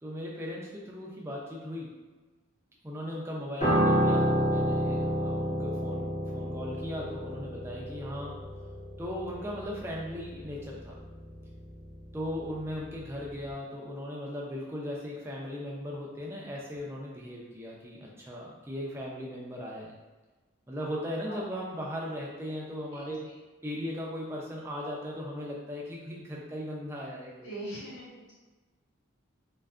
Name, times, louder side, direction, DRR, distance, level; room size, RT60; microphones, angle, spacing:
voice 1, 0.0-2.0 2.8-8.4 9.0-11.0 12.1-20.0 20.7-23.3 23.6-27.5, equal, 10° right, -3 dB, 0.3 m, -38 dB
Piano, 3.6-13.0 13.3-13.5, equal, 35° left, 0.8 m, -30 dB
voice 2, 27.4-28.3, right 1 dB, 65° left, -9 dB, 1.1 m, -41 dB
2.5 x 2.3 x 2.3 m, 1.3 s
head